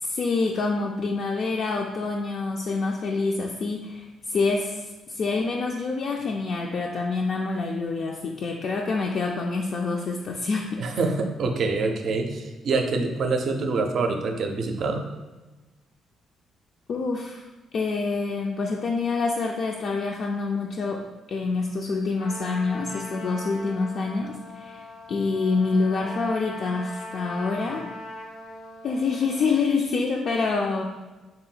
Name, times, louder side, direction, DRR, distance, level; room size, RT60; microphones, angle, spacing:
voice 1, 0.0-10.8 12.9-13.1 16.9-17.5 17.7-27.9 28.8-30.8, left 4 dB, 55° left, 0 dB, 0.3 m, -27 dB
voice 2, 10.8-15.0, right 3 dB, 60° right, 4 dB, 0.5 m, -26 dB
Trumpet, 22.2-29.5, left 1 dB, 85° left, 0.7 m, -40 dB
3.9 x 2.1 x 4.0 m, 1.2 s
cardioid pair, 90°, 0 cm